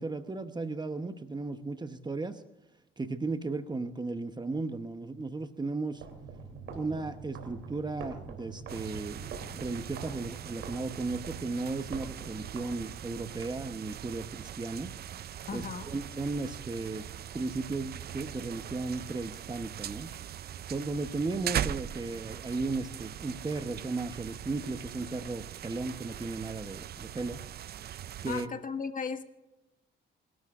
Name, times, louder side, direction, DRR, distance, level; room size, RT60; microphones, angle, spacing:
voice 1, 0.0-2.4 3.0-6.0 6.7-14.9 15.5-17.1 17.3-20.1 20.7-27.4 28.2-28.5, right 3 dB, 20° right, 9 dB, 1.0 m, -35 dB
sound 1, 5.9-13.3, right 4 dB, 85° right, 3.2 m, -45 dB
sound 2, 8.7-28.5, right 10 dB, 55° right, 0.5 m, -41 dB
voice 2, 15.5-15.9 28.3-29.2, left 5 dB, 45° left, 8 dB, 1.5 m, -36 dB
28.5 x 12.5 x 2.5 m, 0.99 s
cardioid pair, 90°, 20 cm